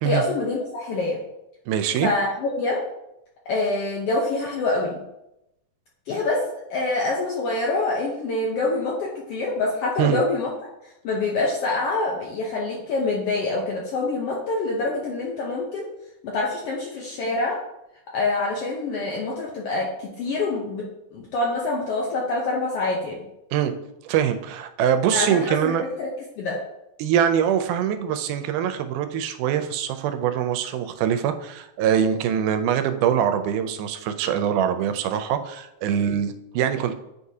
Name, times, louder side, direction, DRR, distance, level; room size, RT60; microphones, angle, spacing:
voice 1, 0.0-1.2 2.0-2.8 3.5-5.0 6.1-6.4 6.7-10.5 11.0-15.9 16.2-17.6 18.1-23.3 25.1-25.7 26.0-26.1 26.4-26.6, left 3 dB, 75° left, -2 dB, 1.4 m, -25 dB
voice 2, 1.7-2.1 10.0-10.2 23.5-23.7 24.0-25.8 27.0-36.9, right 9 dB, 90° right, 9 dB, 2.1 m, -23 dB
8.3 x 4.7 x 2.7 m, 0.88 s
omnidirectional pair, 3.5 m